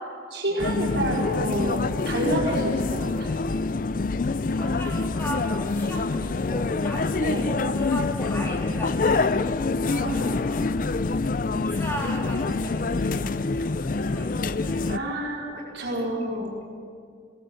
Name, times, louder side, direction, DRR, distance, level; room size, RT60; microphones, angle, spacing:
voice 1, 0.3-3.5 7.2-7.5 9.9-10.5 14.9-16.6, right 1 dB, 70° right, -2 dB, 5.1 m, -29 dB
sound 1, 0.6-15.0, left 3 dB, 45° left, 0.5 m, -26 dB
voice 2, 4.5-9.4 10.2-10.8 11.5-15.2 15.9-16.6, equal, 10° left, -1 dB, 3.0 m, -37 dB
21.5 x 17.5 x 7.8 m, 2.2 s
head